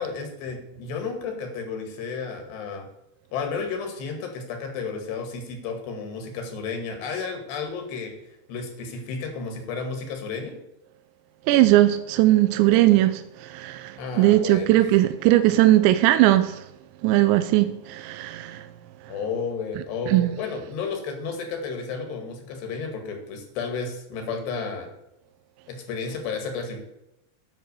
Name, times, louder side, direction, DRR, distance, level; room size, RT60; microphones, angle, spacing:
voice 1, 0.0-2.9 3.3-8.1 8.5-10.5 14.0-14.8 19.1-24.9 25.7-26.8, left 5 dB, 75° left, 4.2 m, -32 dB
voice 2, 11.5-16.6 17.0-18.7 20.1-20.3, right 15 dB, 90° right, 2.9 m, -19 dB
10.5 x 7.5 x 6.8 m
omnidirectional pair, 5.1 m